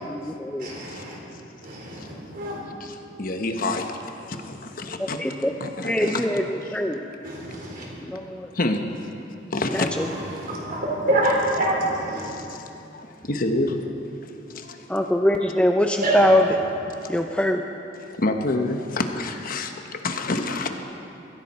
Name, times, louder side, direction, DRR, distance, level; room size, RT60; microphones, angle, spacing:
voice 1, 0.1-0.7 5.0-5.5 5.8-7.0 8.0-8.5 9.7-10.1 14.9-16.5 17.1-17.6, left 1 dB, 5° left, 3 dB, 0.6 m, -23 dB
voice 2, 0.6-1.2 1.6-2.6 7.2-7.9 10.3-12.3 16.0-16.3, right 1 dB, 50° right, -2 dB, 3.8 m, -26 dB
voice 3, 2.8-5.2 5.6-7.0 8.5-8.8 9.5-9.9 12.2-13.8 14.2-14.8 17.0-17.3 17.9-20.7, left 2 dB, 50° left, 5 dB, 1.1 m, -29 dB
21.5 x 15.0 x 4.3 m, 2.8 s
head